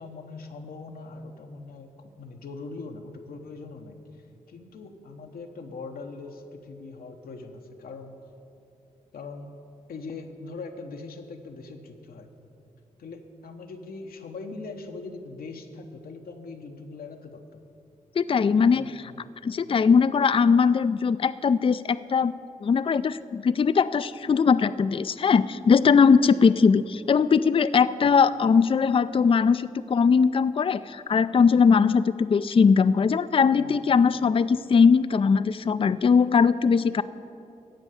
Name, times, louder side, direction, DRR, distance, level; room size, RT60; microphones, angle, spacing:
voice 1, 0.0-8.1 9.1-9.5 9.9-12.3 13.0-17.6 18.7-19.3 26.4-26.5 28.0-28.2 33.5-33.8, left 3 dB, 80° left, 5 dB, 1.0 m, -41 dB
voice 2, 18.2-18.8 19.4-22.3 22.6-37.0, left 5 dB, 35° left, 15 dB, 0.4 m, -20 dB
14.5 x 5.3 x 8.3 m, 2.7 s
supercardioid pair, 40°, 15 cm